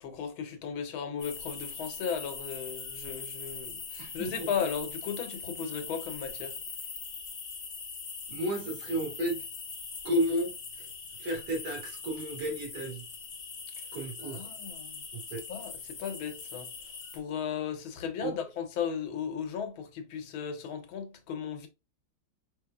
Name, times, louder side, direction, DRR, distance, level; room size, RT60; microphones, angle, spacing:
voice 1, 0.0-6.6 14.2-14.9 15.5-16.7 17.1-21.7, left 7 dB, 85° left, 1.7 m, -36 dB
sound 1, 1.2-17.2, left 5 dB, 45° left, 1.0 m, -42 dB
voice 2, 4.0-4.5 8.3-9.4 10.0-10.9 11.2-13.0 13.9-14.5 15.1-15.4 18.2-18.3, equal, 55° right, 2.4 m, -32 dB
4.7 x 3.8 x 2.3 m
omnidirectional pair, 2.2 m